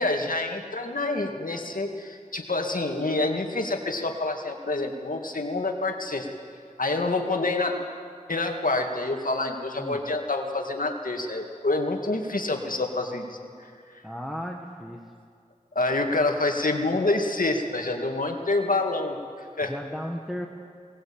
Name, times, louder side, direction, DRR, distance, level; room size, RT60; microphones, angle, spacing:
voice 1, 0.0-6.3 6.8-7.8 8.3-14.0 15.8-19.7, left 2 dB, 75° left, 3 dB, 2.3 m, -27 dB
voice 2, 14.0-15.1 19.7-20.5, equal, ahead, 1 dB, 1.7 m, -35 dB
21.0 x 19.5 x 8.8 m, 2.2 s
wide cardioid pair, 55°, 14 cm